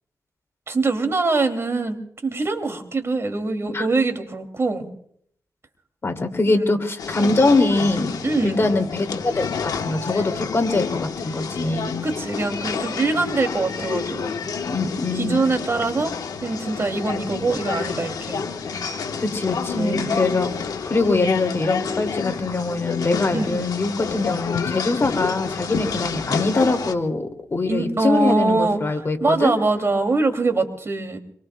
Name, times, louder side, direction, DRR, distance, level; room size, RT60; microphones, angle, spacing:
voice 1, 0.7-4.9 8.2-8.7 12.0-14.4 15.2-16.1 16.4-18.4 19.8-20.3 23.3-23.5 27.7-28.8 29.2-31.2, right 3 dB, 45° right, 6 dB, 2.5 m, -23 dB
voice 2, 6.0-8.2 8.4-12.1 14.6-15.4 19.2-29.6, left 3 dB, 40° left, 4 dB, 2.4 m, -23 dB
sound 1, 7.0-26.9, left 5 dB, 85° left, 1.1 m, -29 dB
27.0 x 23.0 x 2.2 m, 0.65 s
cardioid pair, 75°, 6 cm